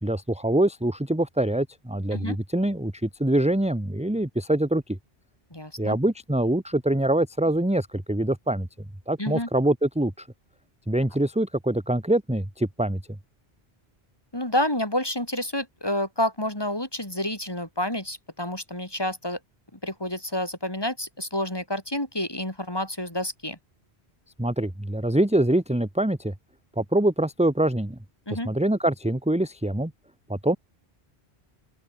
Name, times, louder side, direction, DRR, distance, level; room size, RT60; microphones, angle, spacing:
voice 1, 0.0-5.0 5.8-8.7 9.1-10.3 10.9-13.0 24.4-26.3 26.8-28.0 28.3-29.9 30.3-30.6, right 1 dB, 5° right, 1.4 m, -24 dB
voice 2, 5.5-6.0 9.2-9.5 14.3-19.4 19.7-23.6 28.3-28.5, left 1 dB, 20° left, 3.5 m, -29 dB
open air
omnidirectional pair, 1.1 m